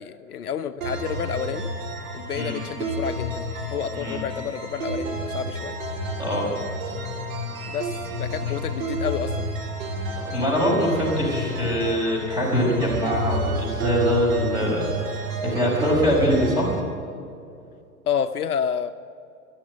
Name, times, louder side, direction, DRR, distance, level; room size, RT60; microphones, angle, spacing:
voice 1, 0.0-1.7 2.1-5.8 7.7-9.5 14.6-14.8 18.1-18.9, left 8 dB, 70° left, 12 dB, 0.7 m, -30 dB
sound 1, 0.8-16.8, right 1 dB, 60° right, 2.7 m, -30 dB
voice 2, 6.2-6.5 8.4-8.5 10.1-16.8, equal, 10° right, -2 dB, 5.2 m, -23 dB
13.5 x 11.5 x 8.8 m, 2.5 s
figure-of-eight pair, 95°, 46 cm